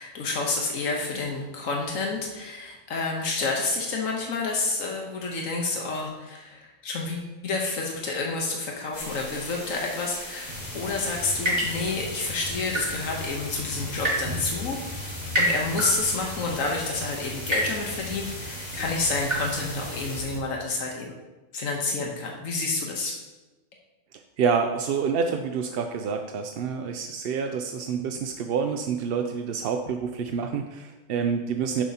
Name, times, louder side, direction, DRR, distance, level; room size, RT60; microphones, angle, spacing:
voice 1, 0.0-21.1 21.5-23.2, left 3 dB, 90° left, 0 dB, 1.4 m, -29 dB
sound 1, 8.9-20.2, left 1 dB, 50° left, 3.3 m, -40 dB
sound 2, 10.4-20.4, equal, 45° right, 2.9 m, -32 dB
voice 2, 24.4-31.8, right 6 dB, 65° right, 5 dB, 0.6 m, -27 dB
9.8 x 7.1 x 2.8 m, 1.1 s
omnidirectional pair, 1.3 m